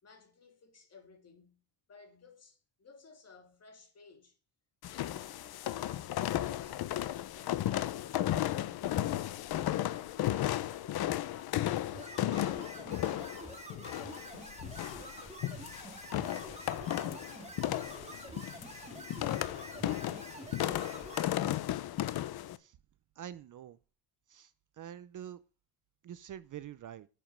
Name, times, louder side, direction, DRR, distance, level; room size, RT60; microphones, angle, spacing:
voice 1, 0.0-1.6 1.9-4.4 4.8-6.1 9.9-12.1, left 4 dB, 35° left, 2.9 m, -59 dB
sound 1, 4.8-22.6, left 13 dB, 55° left, 0.7 m, -34 dB
sound 2, 11.9-21.2, right 2 dB, 15° right, 2.1 m, -47 dB
voice 2, 23.2-23.8 24.3-24.5 24.8-25.4 26.0-27.1, right 10 dB, 45° right, 0.6 m, -46 dB
11.0 x 5.2 x 7.3 m
cardioid pair, 150°, 44 cm